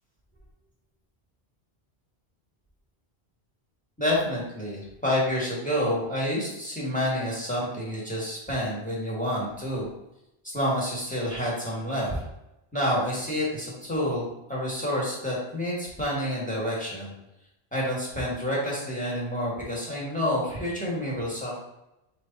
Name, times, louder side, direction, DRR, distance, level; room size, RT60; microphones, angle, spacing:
voice 1, 4.0-9.9 10.4-12.2 12.7-17.1 17.7-21.6, equal, 10° left, -6 dB, 1.3 m, -28 dB
4.0 x 3.3 x 4.0 m, 0.90 s
omnidirectional pair, 1.1 m